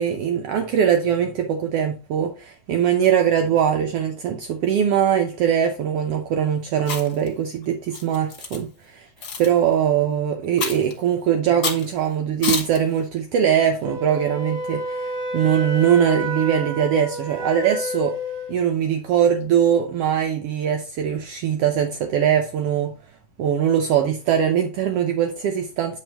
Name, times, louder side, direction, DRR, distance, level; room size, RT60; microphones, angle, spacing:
voice 1, 0.0-9.1 9.4-15.1 15.3-18.2 18.5-22.9 23.4-26.0, right 9 dB, 85° right, 1.3 m, -21 dB
Chewing mastication, 6.8-7.3 7.9-8.6 9.2-9.5 10.6-10.9 11.6-11.9 12.4-12.8, left 5 dB, 40° left, 1.4 m, -27 dB
Wind instrument woodwind instrument, 13.8-18.5, equal, 35° right, 1.7 m, -29 dB
9.1 x 3.5 x 4.4 m
omnidirectional pair, 3.7 m